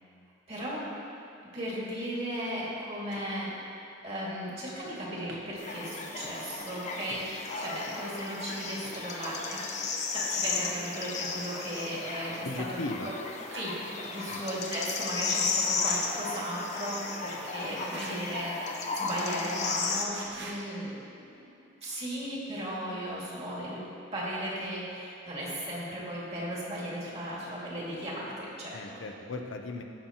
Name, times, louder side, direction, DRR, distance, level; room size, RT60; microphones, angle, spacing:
voice 1, 0.5-0.9 1.4-3.6 4.0-9.7 10.1-12.7 13.0-13.1 13.5-21.6 21.8-23.8 24.1-29.0, equal, 35° right, -6 dB, 2.1 m, -36 dB
sound 1, 3.1-3.3 4.7-5.9 6.2-9.5 9.8-10.0 11.3-12.9 13.2-14.3 14.6-14.9 15.3-15.5 15.8-16.3 17.9-18.3 20.1-20.7, right 2 dB, 65° right, 1.0 m, -48 dB
sound 2, 5.6-20.1, left 4 dB, 40° left, 0.7 m, -34 dB
voice 2, 12.4-13.1 14.3-14.4 28.7-29.8, left 2 dB, 85° left, 3 dB, 0.7 m, -37 dB
16.0 x 5.6 x 2.9 m, 2.7 s
head